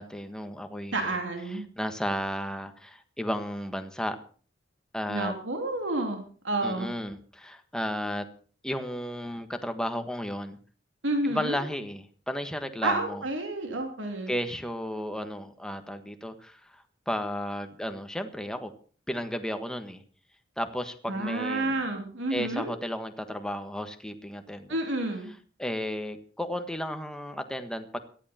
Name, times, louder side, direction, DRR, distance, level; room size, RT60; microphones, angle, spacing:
voice 1, 0.0-1.2 1.5-4.2 4.9-5.3 6.6-8.2 8.6-10.6 11.3-13.2 14.3-18.7 19.1-20.0 20.6-21.8 22.3-24.8 25.6-28.0, equal, 5° left, 7 dB, 1.5 m, -33 dB
voice 2, 0.9-1.6 5.1-6.9 11.0-11.6 12.8-14.3 21.1-22.7 24.7-25.3, right 2 dB, 80° right, 3 dB, 3.1 m, -30 dB
18.0 x 13.5 x 4.4 m, 0.42 s
head